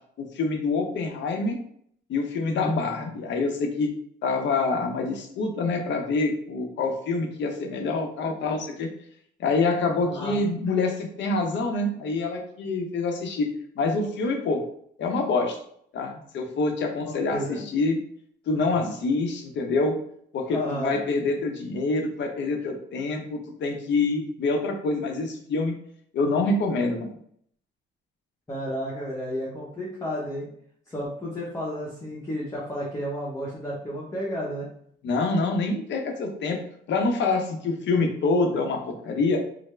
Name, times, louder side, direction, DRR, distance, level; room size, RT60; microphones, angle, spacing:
voice 1, 0.2-1.6 2.1-3.9 4.2-8.9 9.4-13.5 13.8-14.6 15.0-15.6 15.9-18.0 18.5-19.9 20.3-25.7 26.1-27.1 35.0-36.6 36.9-39.4, left 3 dB, 65° left, 4 dB, 0.7 m, -26 dB
voice 2, 2.5-2.8 10.0-10.4 17.0-17.6 18.8-18.9 20.5-21.0 28.5-30.5 30.9-34.7, equal, 15° left, -6 dB, 0.8 m, -32 dB
3.3 x 2.0 x 3.1 m, 0.65 s
cardioid pair, 90°, 20 cm